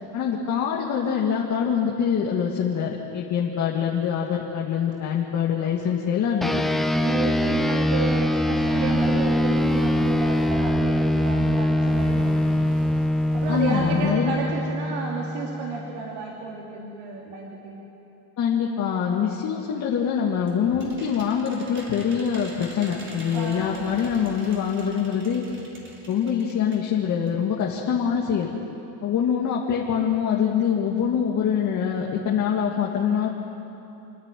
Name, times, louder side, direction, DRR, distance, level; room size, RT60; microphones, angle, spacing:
voice 1, 0.1-6.5 13.5-14.3 18.4-25.4 26.1-28.5 29.0-33.3, left 7 dB, 40° left, -2 dB, 2.1 m, -24 dB
sound 1, 6.4-16.1, left 1 dB, ahead, 0.7 m, -23 dB
voice 2, 7.0-12.7 13.3-17.8 23.3-24.0, right 4 dB, 65° right, -2 dB, 3.0 m, -32 dB
sound 2, 8.6-14.1, right 3 dB, 50° right, 4.1 m, -41 dB
sound 3, 20.0-26.9 27.3-27.4 27.6-27.7, right 1 dB, 25° right, 3.6 m, -45 dB
29.0 x 9.8 x 9.2 m, 3.0 s
supercardioid pair, 120°, 44 cm